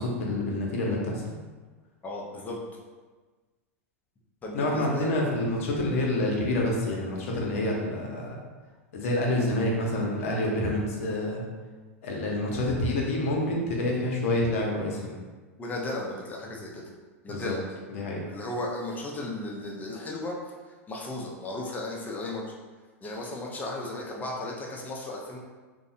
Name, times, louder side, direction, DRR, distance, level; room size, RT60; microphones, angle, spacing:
voice 1, 0.0-1.4 4.5-8.4 8.9-11.4 12.0-15.1 17.3-17.6 17.9-18.2, left 1 dB, 65° left, -2 dB, 0.7 m, -28 dB
voice 2, 2.0-2.6 4.4-5.1 15.6-16.8 17.2-17.6 18.3-20.4 20.6-22.4 23.0-25.4, left 2 dB, 20° left, -2 dB, 0.5 m, -35 dB
2.6 x 2.1 x 2.6 m, 1.3 s
hypercardioid pair, 100°, 8 cm